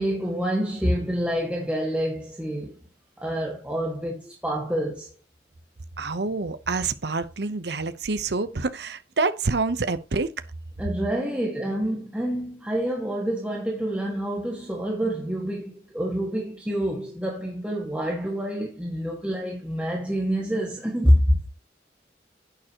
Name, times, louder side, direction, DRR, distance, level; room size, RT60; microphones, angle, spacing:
voice 1, 0.0-2.8 3.2-5.1 10.8-21.5, equal, 5° right, 1.7 m, -27 dB
voice 2, 6.0-10.3, right 3 dB, 75° right, 0.8 m, -27 dB
10.5 x 9.0 x 2.9 m
head